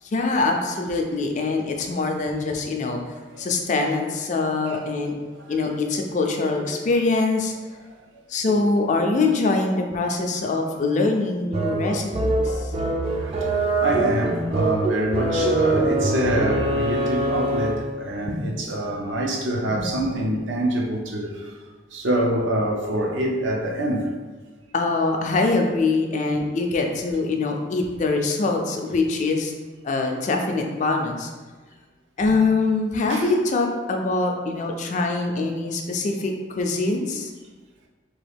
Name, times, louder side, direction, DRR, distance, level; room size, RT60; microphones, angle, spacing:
voice 1, 0.0-3.0 3.4-5.2 5.5-7.5 8.3-12.7 18.3-18.5 19.8-19.9 24.7-29.5 29.8-31.3 32.2-37.3, left 3 dB, 40° left, 3 dB, 0.3 m, -23 dB
sound 1, 11.5-18.0, right 2 dB, 30° right, 0.3 m, -23 dB
voice 2, 13.1-21.6 21.9-24.1 33.1-33.2, right 1 dB, 85° right, -1 dB, 0.6 m, -26 dB
3.0 x 2.4 x 3.3 m, 1.3 s
head